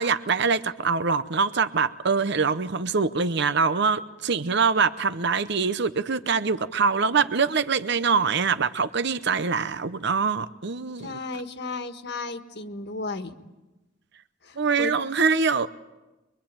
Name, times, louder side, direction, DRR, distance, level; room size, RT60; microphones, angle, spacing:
voice 1, 0.0-11.2 14.6-15.7, right 5 dB, 60° right, 12 dB, 0.8 m, -24 dB
voice 2, 11.0-13.3 14.4-14.9, left 3 dB, 55° left, 7 dB, 1.6 m, -34 dB
24.5 x 23.5 x 8.9 m, 1.1 s
head